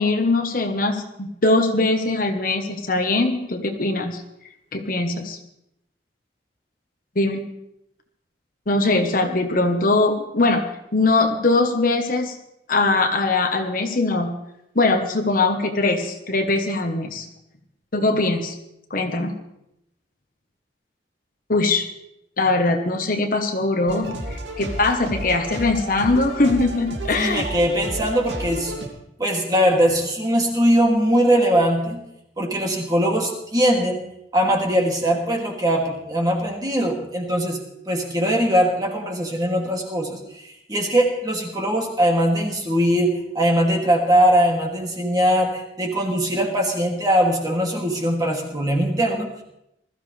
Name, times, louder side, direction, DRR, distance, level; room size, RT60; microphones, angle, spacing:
voice 1, 0.0-4.2 4.7-5.4 7.1-7.4 8.7-10.6 10.9-12.3 12.7-14.3 14.7-17.3 17.9-18.6 18.9-19.3 21.5-21.9 22.4-27.4, left 2 dB, 50° left, 5 dB, 1.2 m, -21 dB
sound 1, 23.9-28.9, right 1 dB, 70° right, 2.7 m, -31 dB
voice 2, 27.2-28.7 29.2-32.0 32.4-34.0 34.3-37.6 37.9-49.4, equal, 20° right, 0 dB, 2.6 m, -21 dB
20.5 x 14.0 x 3.4 m, 0.83 s
head